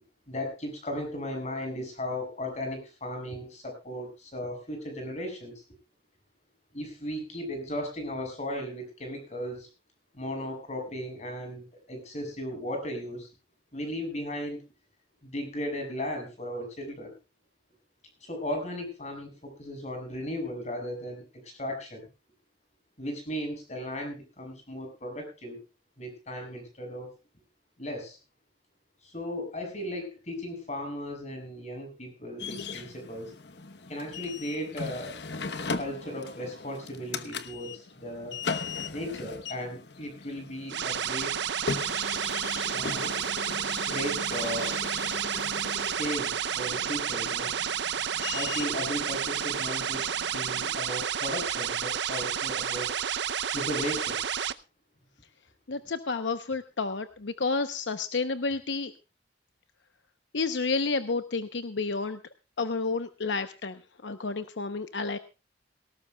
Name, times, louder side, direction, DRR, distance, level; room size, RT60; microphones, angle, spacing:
voice 1, 0.3-5.6 6.7-9.7 10.1-13.3 13.7-14.6 15.2-17.1 18.2-22.1 23.0-25.6 26.0-27.1 27.8-28.2 29.0-33.3 33.9-35.2 35.7-38.4 38.9-41.4 42.7-43.1 43.9-44.7 45.8-47.5 48.3-52.9 53.5-54.2, equal, 40° left, 5 dB, 6.3 m, -36 dB
sound 1, 32.4-50.8, left 4 dB, 65° left, 1.0 m, -39 dB
sound 2, 40.7-54.5, right 8 dB, 75° right, 0.7 m, -30 dB
voice 2, 55.7-58.9 60.3-62.2 62.6-65.2, left 4 dB, 80° left, 10 dB, 0.8 m, -30 dB
18.5 x 18.0 x 2.3 m, 0.29 s
head